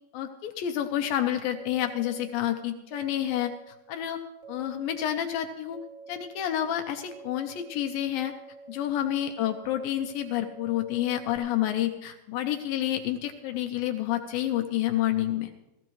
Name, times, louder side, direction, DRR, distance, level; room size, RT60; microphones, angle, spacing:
voice 1, 0.1-4.2 4.5-5.8 6.1-8.3 8.7-15.5, left 12 dB, 80° left, 5 dB, 2.2 m, -29 dB
sound 1, 1.5-2.3 2.9-3.6 4.4-5.1 5.7-6.4 7.1-11.4, right 4 dB, 20° right, 1.5 m, -48 dB
16.0 x 15.5 x 3.1 m, 0.96 s
omnidirectional pair, 4.5 m